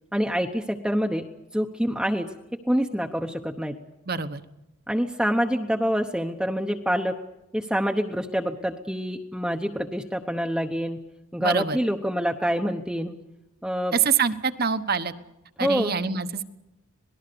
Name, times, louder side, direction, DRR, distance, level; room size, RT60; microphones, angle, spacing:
voice 1, 0.1-2.3 2.6-3.8 4.9-7.2 7.5-11.0 11.3-13.2 13.6-13.9 15.6-15.9, equal, 5° right, 2 dB, 0.9 m, -26 dB
voice 2, 4.1-4.4 11.4-11.8 13.9-15.1 15.6-16.4, right 6 dB, 45° right, 10 dB, 1.2 m, -25 dB
26.5 x 19.0 x 6.9 m, 0.93 s
head